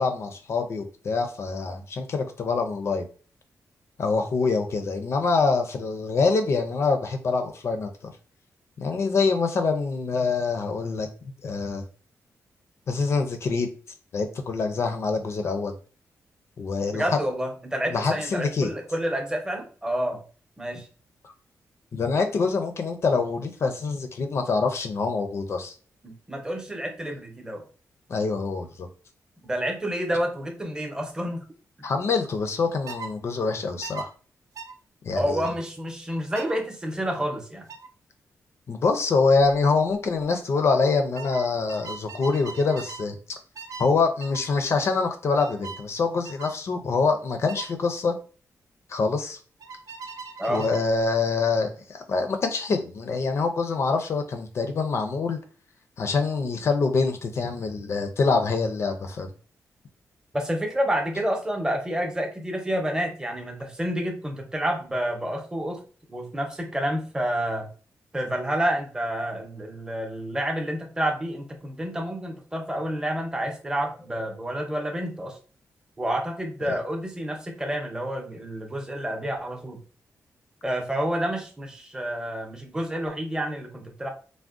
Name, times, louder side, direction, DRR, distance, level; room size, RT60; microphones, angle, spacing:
voice 1, 0.0-3.0 4.0-8.1 8.8-11.1 11.4-11.8 12.9-13.7 14.1-15.7 16.6-17.0 17.9-18.7 21.2-21.3 21.9-25.7 28.1-28.9 31.8-34.1 35.0-35.4 38.7-43.2 43.8-48.2 48.9-49.4 50.5-55.4 56.0-59.3 76.7-76.8, left 4 dB, 50° left, 5 dB, 0.4 m, -25 dB
voice 2, 16.9-20.2 20.6-20.9 26.0-27.6 29.4-31.5 35.2-37.7 50.4-50.6 60.3-65.8 66.1-67.7 68.1-75.4 76.0-79.8 80.6-84.1, equal, 15° right, 2 dB, 0.6 m, -29 dB
sound 1, 32.9-33.1 33.8-34.1 34.6-34.7 35.4-35.6 36.3-36.6 37.7-37.9 39.4-39.6 39.9-40.2 41.2-43.1 43.6-43.9 44.2-44.5 45.4-45.8 46.2-46.6 47.5-47.7 49.6-50.9, right 5 dB, 75° right, 0.4 m, -40 dB
3.5 x 2.1 x 2.4 m, 0.38 s
wide cardioid pair, 140°, 6 cm